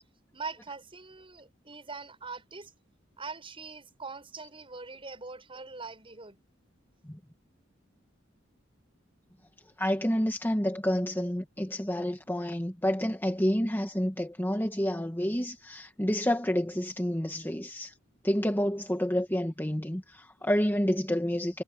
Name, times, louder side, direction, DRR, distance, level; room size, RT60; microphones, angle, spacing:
voice 1, 0.3-2.7 3.2-6.4, right 4 dB, 30° right, 6.7 m, -42 dB
voice 2, 9.8-17.9 18.2-21.6, equal, 10° left, 1.5 m, -29 dB
head